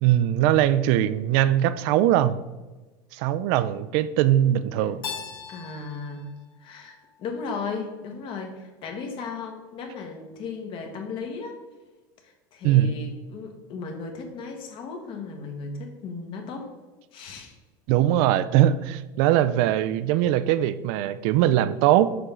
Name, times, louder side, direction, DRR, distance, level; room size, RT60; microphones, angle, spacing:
voice 1, 0.0-2.4 3.1-5.0 12.6-12.9 17.9-22.2, right 12 dB, 70° right, 14 dB, 0.4 m, -21 dB
Keyboard (musical), 5.0-7.8, left 6 dB, 90° left, 1.4 m, -40 dB
voice 2, 5.5-6.3 6.6-11.6 12.2-16.7 17.1-17.5, left 4 dB, 50° left, 3 dB, 1.5 m, -36 dB
6.8 x 5.4 x 3.7 m, 1.2 s
supercardioid pair, 120°, 11 cm